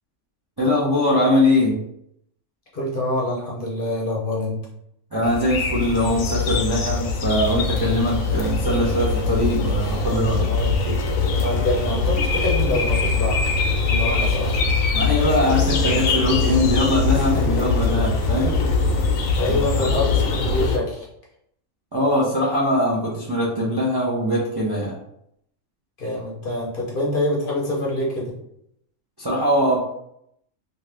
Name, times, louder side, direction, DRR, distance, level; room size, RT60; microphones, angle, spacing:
voice 1, 0.6-1.8 5.1-10.5 14.1-14.2 14.9-18.9 19.4-19.9 21.9-24.9 29.2-29.8, left 1 dB, 30° right, -5 dB, 0.4 m, -22 dB
voice 2, 2.7-4.6 6.7-6.8 9.8-11.0 11.4-13.4 13.9-14.5 17.3-17.5 19.4-21.1 23.5-23.6 26.0-28.3, left 1 dB, 50° left, -4 dB, 0.7 m, -26 dB
sound 1, 5.2-20.8, left 4 dB, 85° left, 1.0 m, -22 dB
2.8 x 2.4 x 3.2 m, 0.76 s
omnidirectional pair, 1.4 m